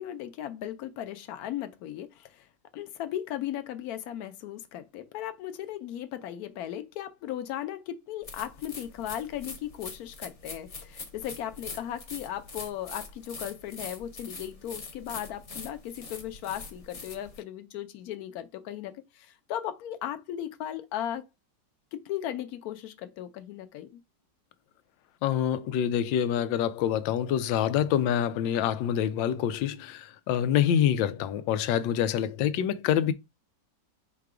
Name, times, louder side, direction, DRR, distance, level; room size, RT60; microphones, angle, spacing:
voice 1, 0.0-2.5 2.7-21.3 21.9-24.0, left 11 dB, 65° left, 1.0 m, -37 dB
sound 1, 8.2-17.4, left 4 dB, 50° left, 0.4 m, -43 dB
voice 2, 25.2-33.1, left 10 dB, 90° left, 1.3 m, -26 dB
4.8 x 2.2 x 4.8 m
omnidirectional pair, 2.0 m